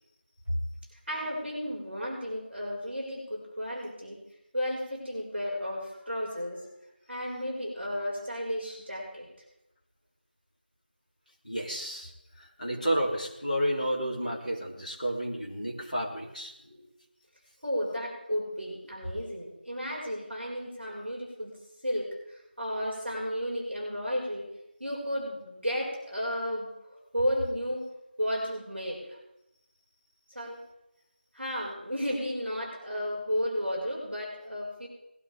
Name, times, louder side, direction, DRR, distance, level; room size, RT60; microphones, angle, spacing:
voice 1, 1.1-4.2 4.5-6.6 7.1-9.3 16.6-16.8 17.6-21.5 21.8-24.4 24.8-27.9 28.2-29.2 30.3-30.6 31.3-34.9, equal, 5° left, -23 dB, 4.4 m, -33 dB
voice 2, 11.4-12.1 12.4-16.5, equal, 45° left, -3 dB, 3.4 m, -31 dB
20.5 x 12.5 x 3.7 m, 0.88 s
figure-of-eight pair, 180°, 6 cm